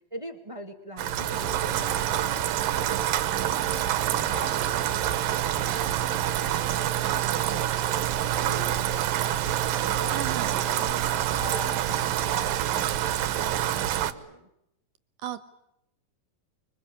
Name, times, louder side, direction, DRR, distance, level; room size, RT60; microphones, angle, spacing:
voice 1, 0.1-14.5, equal, 15° right, 8 dB, 1.0 m, -43 dB
Rain, 1.0-14.1, right 12 dB, 90° right, 2.9 m, -26 dB
voice 2, 10.1-10.6 15.2-15.4, right 10 dB, 75° right, 13 dB, 2.8 m, -34 dB
25.5 x 24.0 x 8.8 m, 0.82 s
omnidirectional pair, 3.9 m